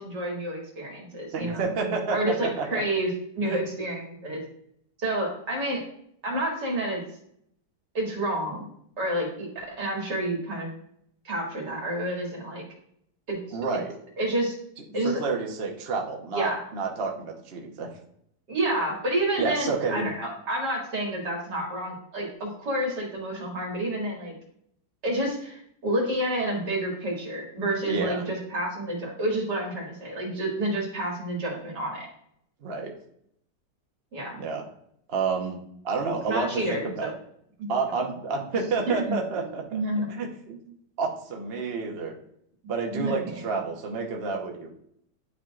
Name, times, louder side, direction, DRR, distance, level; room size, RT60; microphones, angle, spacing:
voice 1, 0.0-3.1 3.3-4.4 5.0-5.8 6.2-7.0 7.9-8.7 9.0-10.7 11.2-12.6 13.3-13.6 14.2-14.6 14.9-15.2 16.3-16.6 18.5-24.3 25.0-32.1 34.1-34.4 36.2-37.1 37.6-37.8 38.9-39.2 39.7-40.1 40.5-40.6 42.9-43.5, right 1 dB, 90° right, -2 dB, 2.6 m, -29 dB
voice 2, 1.3-2.2 2.7-2.8 3.4-3.6 13.5-13.9 15.1-17.9 19.4-20.1 27.9-28.2 32.6-32.9 34.4-34.6 35.1-35.6 35.8-37.1 37.7-39.8 40.1-40.3 41.0-42.1 42.7-44.7, right 4 dB, 40° right, 1 dB, 1.1 m, -29 dB
11.0 x 4.5 x 2.4 m, 0.71 s
omnidirectional pair, 1.8 m